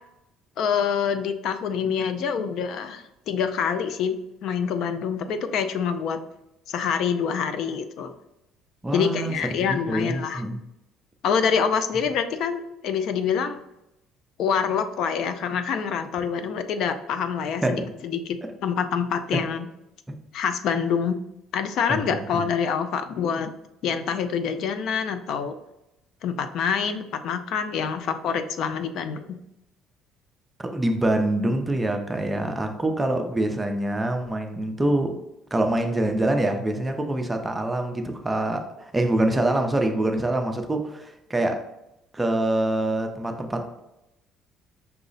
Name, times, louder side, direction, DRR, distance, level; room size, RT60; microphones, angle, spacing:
voice 1, 0.6-4.2 4.4-6.2 6.7-8.1 8.9-10.4 11.2-13.6 14.4-18.2 18.6-19.7 20.3-21.2 21.5-23.5 23.8-25.5 26.2-29.4, left 7 dB, 60° left, 0.4 m, -26 dB
voice 2, 8.8-9.4 9.7-10.6 17.6-17.9 19.3-19.5 20.1-20.2 21.9-22.0 22.3-22.4 30.6-35.2 35.5-41.6 42.1-43.8, right 1 dB, 10° right, 0.5 m, -25 dB
5.5 x 2.0 x 3.9 m
cardioid pair, 140°, 0 cm